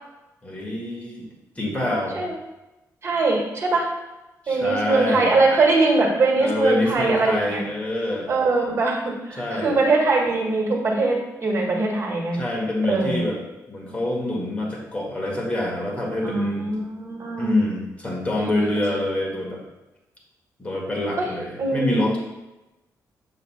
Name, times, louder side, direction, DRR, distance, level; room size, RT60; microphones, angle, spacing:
voice 1, 0.4-1.3 1.6-2.2 4.4-5.4 6.4-8.3 9.4-9.8 12.3-13.4 13.7-16.7 17.4-19.6 20.6-22.2, left 1 dB, 20° left, -3 dB, 1.8 m, -26 dB
voice 2, 3.0-3.9 4.5-7.6 8.3-12.4 12.9-13.3 16.2-17.5 18.3-18.8 21.2-21.3 21.6-22.1, right 3 dB, 40° right, -2 dB, 1.7 m, -22 dB
7.1 x 6.6 x 2.2 m, 0.99 s
cardioid pair, 110°, 7 cm